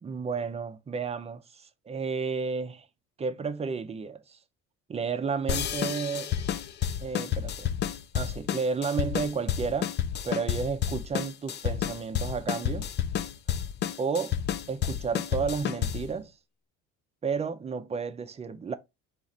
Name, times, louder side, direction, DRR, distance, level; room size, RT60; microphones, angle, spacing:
voice 1, 0.0-2.9 3.2-4.4 4.9-6.4 7.0-7.7 8.1-9.9 10.2-12.9 14.0-14.4 14.7-16.3 17.2-18.7, right 5 dB, 20° right, 0.5 m, -32 dB
sound 1, 5.5-16.2, left 9 dB, 35° left, 0.4 m, -30 dB
4.7 x 2.5 x 4.0 m
cardioid pair, 115°, 29 cm